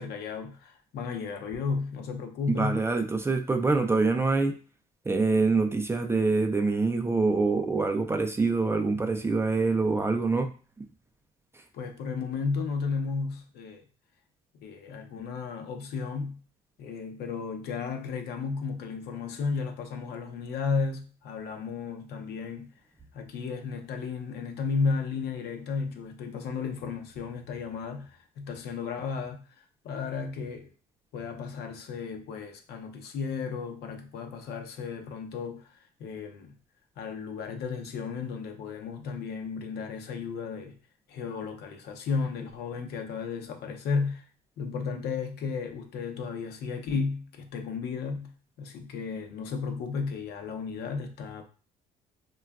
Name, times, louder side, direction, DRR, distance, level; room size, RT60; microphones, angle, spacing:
voice 1, 0.0-2.8 11.7-13.8 14.5-16.4 16.8-22.7 23.1-30.7 31.1-36.6 37.0-40.8 41.1-44.2 44.6-51.4, left 5 dB, 70° left, 0.7 m, -34 dB
voice 2, 2.5-4.5 5.1-10.5 10.8-10.9, right 3 dB, 15° right, 0.3 m, -25 dB
4.3 x 2.3 x 2.3 m
cardioid pair, 110°, 17 cm